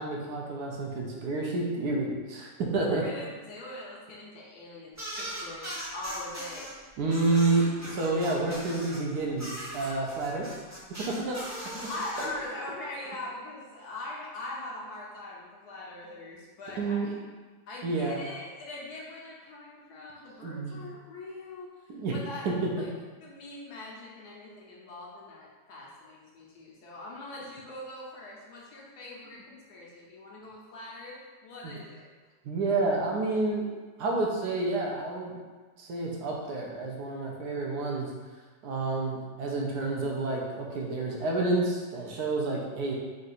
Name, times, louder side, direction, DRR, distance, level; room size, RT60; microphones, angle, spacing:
voice 1, 0.0-3.0 7.0-10.5 10.9-11.4 12.2-12.3 16.8-17.1 17.8-18.2 20.4-20.8 21.9-22.1 22.4-22.5 31.6-31.7 32.4-33.6 34.0-35.4 35.8-38.1 38.6-43.0, right 3 dB, 70° right, -1 dB, 1.2 m, -29 dB
voice 2, 2.8-6.7 11.7-17.2 17.7-22.5 22.8-22.9 23.2-32.1, left 2 dB, 70° left, -3 dB, 1.3 m, -42 dB
sound 1, 5.0-6.7 7.1-9.0 9.4-12.3, right 1 dB, 15° right, 0.7 m, -39 dB
3.8 x 2.4 x 4.1 m, 1.4 s
omnidirectional pair, 1.8 m